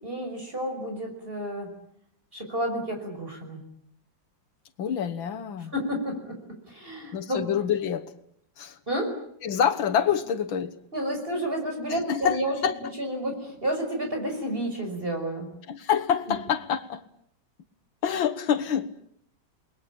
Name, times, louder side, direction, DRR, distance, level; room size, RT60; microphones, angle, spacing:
voice 1, 0.0-1.7 2.3-3.6 5.7-6.4 6.7-7.4 8.9-9.1 10.9-15.5 16.3-16.4, equal, 25° right, 3 dB, 6.0 m, -30 dB
voice 2, 4.8-5.7 7.1-8.1 8.6-8.8 9.4-10.8 11.9-12.8 15.7-17.0 18.0-18.9, left 8 dB, 85° left, 12 dB, 2.1 m, -26 dB
29.5 x 21.0 x 8.7 m, 0.70 s
omnidirectional pair, 2.1 m